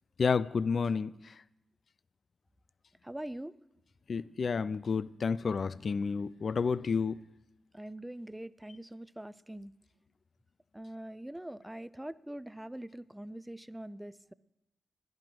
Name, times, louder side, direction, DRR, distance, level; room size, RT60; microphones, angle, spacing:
voice 1, 0.2-1.3 4.1-7.2, left 5 dB, 60° left, 18 dB, 0.4 m, -30 dB
voice 2, 3.0-3.6 7.7-9.7 10.7-14.3, right 1 dB, 10° right, 17 dB, 0.5 m, -43 dB
10.5 x 10.5 x 7.6 m, 0.92 s
cardioid pair, 55°, 0 cm